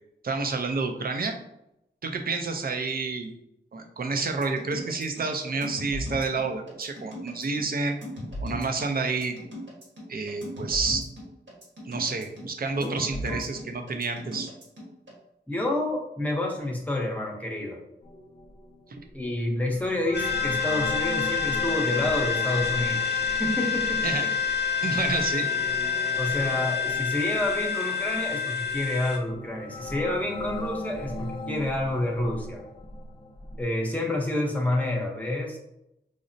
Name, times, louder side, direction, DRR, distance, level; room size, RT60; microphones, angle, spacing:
voice 1, 0.2-1.3 2.0-3.3 3.7-8.0 8.4-9.3 10.1-11.0 11.8-14.5 24.0-24.2 24.8-25.5, right 4 dB, 55° right, 4 dB, 0.5 m, -29 dB
sound 1, 4.3-15.1, equal, 85° right, 1.3 m, -37 dB
voice 2, 12.8-13.5 15.5-17.8 19.1-24.3 26.2-32.6 33.6-35.6, left 1 dB, 10° left, -1 dB, 0.8 m, -29 dB
sound 2, 18.0-33.6, left 2 dB, 30° left, 0.4 m, -39 dB
sound 3, 20.1-29.2, left 7 dB, 60° left, 0.7 m, -27 dB
5.0 x 2.0 x 2.6 m, 0.85 s
wide cardioid pair, 70°, 19 cm